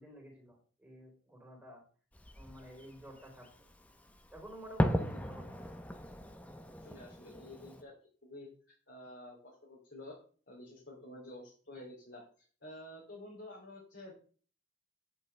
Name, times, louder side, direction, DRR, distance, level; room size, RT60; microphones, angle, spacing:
voice 1, 0.0-1.8 2.4-3.5 4.3-5.6, right 1 dB, 10° right, -2 dB, 3.8 m, -50 dB
Fireworks, 2.1-7.8, equal, 5° left, 0.7 m, -38 dB
voice 2, 6.8-7.9 8.2-10.2 10.5-14.1, left 1 dB, 60° left, -3 dB, 2.9 m, -50 dB
9.6 x 8.5 x 3.3 m, 0.42 s
head